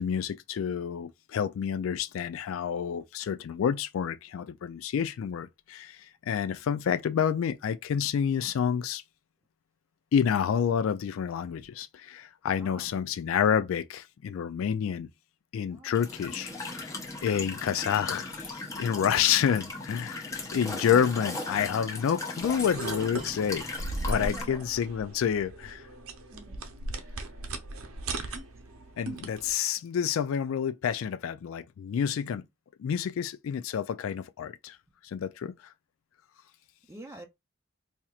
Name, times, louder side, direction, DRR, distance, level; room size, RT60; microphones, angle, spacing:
voice 1, 0.0-9.0 10.1-15.1 15.5-23.7 24.1-25.9 28.1-28.3 29.0-32.4 32.8-34.8 35.0-35.7, left 8 dB, 75° left, 0.3 m, -29 dB
voice 2, 12.5-12.8 15.7-16.0 24.2-24.6 26.3-26.6 36.9-37.3, right 1 dB, 15° right, 0.5 m, -45 dB
Walk footsteps / Chirp tweet / Stream, 15.9-24.4, left 2 dB, 15° left, 0.8 m, -38 dB
sound 1, 22.4-29.5, right 2 dB, 90° right, 0.7 m, -38 dB
4.4 x 2.8 x 2.3 m
head